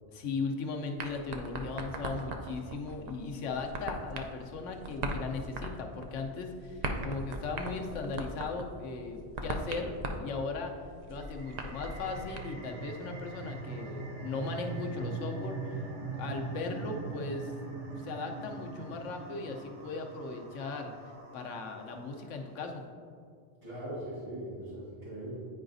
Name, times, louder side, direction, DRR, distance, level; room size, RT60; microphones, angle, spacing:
voice 1, 0.1-10.8 11.1-15.8 16.2-17.5 18.0-20.9 21.3-22.9, left 4 dB, 85° left, 3 dB, 1.0 m, -37 dB
sound 1, 1.0-12.4, right 2 dB, 55° right, 0.4 m, -40 dB
sound 2, 11.2-22.3, right 3 dB, 80° right, 1.3 m, -41 dB
voice 2, 23.6-25.4, right 1 dB, 30° right, -10 dB, 1.8 m, -40 dB
9.3 x 4.8 x 2.6 m, 2.3 s
omnidirectional pair, 1.2 m